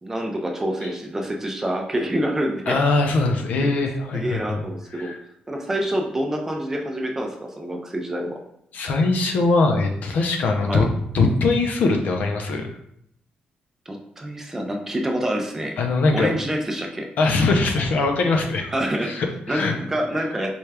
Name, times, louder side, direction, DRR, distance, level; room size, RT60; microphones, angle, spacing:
voice 1, 0.0-2.8 3.6-3.7 4.1-5.1 5.5-8.4 10.7-10.8 13.9-15.8 16.1-17.1 18.7-19.2 19.5-20.5, right 1 dB, 15° right, 1 dB, 0.5 m, -27 dB
voice 2, 2.7-4.6 4.9-5.2 8.7-10.9 11.1-12.7 15.8-16.3 17.2-18.7 19.0-19.7, left 3 dB, 65° left, 3 dB, 0.5 m, -21 dB
4.3 x 2.3 x 3.3 m, 0.72 s
wide cardioid pair, 155°, 3 cm